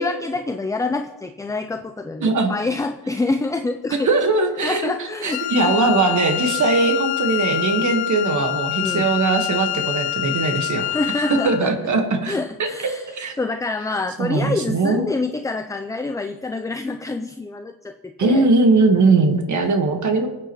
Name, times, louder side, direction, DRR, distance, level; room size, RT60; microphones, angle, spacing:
voice 1, 0.0-4.1 4.6-5.7 8.8-9.1 10.9-11.7 12.3-18.5, left 3 dB, 10° left, 7 dB, 0.3 m, -27 dB
voice 2, 2.2-2.5 3.9-4.9 5.2-10.9 11.3-12.7 13.1-13.3 14.2-15.1 18.2-20.3, right 3 dB, 50° right, 5 dB, 1.5 m, -20 dB
Wind instrument woodwind instrument, 5.3-11.6, left 17 dB, 75° left, 0.5 m, -26 dB
25.0 x 8.3 x 3.0 m, 1.1 s
cardioid pair, 120°, 39 cm